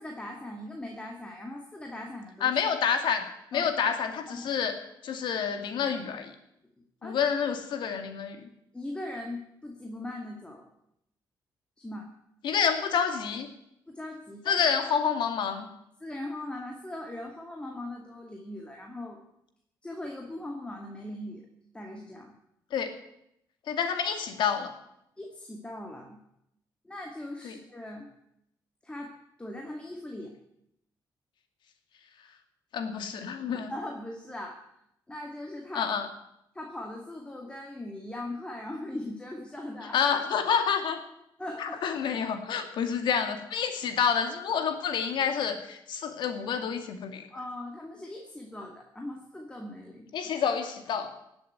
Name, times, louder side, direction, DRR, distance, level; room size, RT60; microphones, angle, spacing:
voice 1, 0.0-2.6 3.5-3.7 4.3-4.5 7.0-7.2 8.7-10.6 11.8-12.1 13.9-14.6 16.0-19.2 19.8-21.4 21.7-22.3 25.2-26.2 26.8-28.1 28.8-30.3 33.7-34.6 35.1-35.9 36.5-40.0 41.4-41.8 47.3-50.1, left 1 dB, 15° left, 1 dB, 2.3 m, -40 dB
voice 2, 2.4-3.2 3.5-4.8 5.0-6.3 7.0-8.4 12.4-13.5 14.5-15.7 22.7-23.0 23.7-24.7 27.4-27.5 32.7-33.7 35.7-36.1 39.9-41.0 41.6-47.3 50.1-51.1, left 7 dB, 75° left, 7 dB, 2.2 m, -28 dB
17.0 x 7.9 x 9.4 m, 0.80 s
cardioid pair, 110°, 8 cm